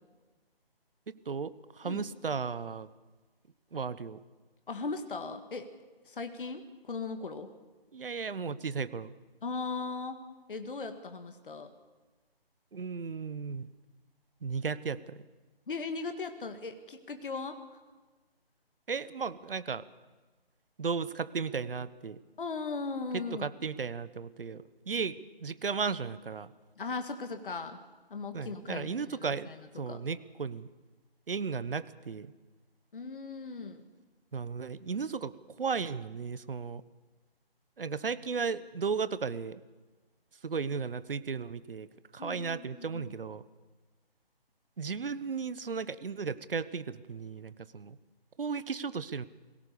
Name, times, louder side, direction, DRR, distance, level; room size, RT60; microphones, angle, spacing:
voice 1, 1.1-2.9 3.7-4.2 7.9-9.1 12.7-13.7 14.4-15.2 18.9-19.8 20.8-22.2 23.1-25.1 25.4-26.5 28.3-30.7 31.3-32.3 34.3-35.3 35.6-36.8 37.8-39.6 40.4-41.9 42.1-43.4 44.8-48.0 48.4-49.3, right 5 dB, 65° right, 16 dB, 1.2 m, -35 dB
voice 2, 4.7-5.7 6.0-7.5 9.4-10.2 10.5-11.7 15.7-17.8 22.4-23.5 26.8-27.8 28.1-30.0 32.9-33.8 42.2-43.1, left 4 dB, 60° left, 7 dB, 1.9 m, -38 dB
22.0 x 17.5 x 6.9 m, 1.3 s
figure-of-eight pair, 165°, 31 cm